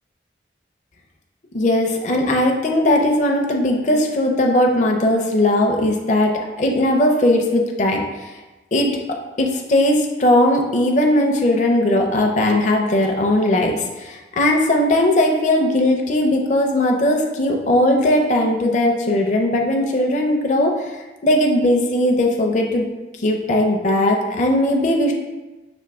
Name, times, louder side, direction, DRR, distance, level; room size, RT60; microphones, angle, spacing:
voice 1, 1.5-8.3 8.7-8.9 9.4-20.7 21.2-22.9 23.2-25.1, left 1 dB, 40° left, 1 dB, 0.5 m, -18 dB
5.9 x 2.6 x 3.5 m, 1.1 s
head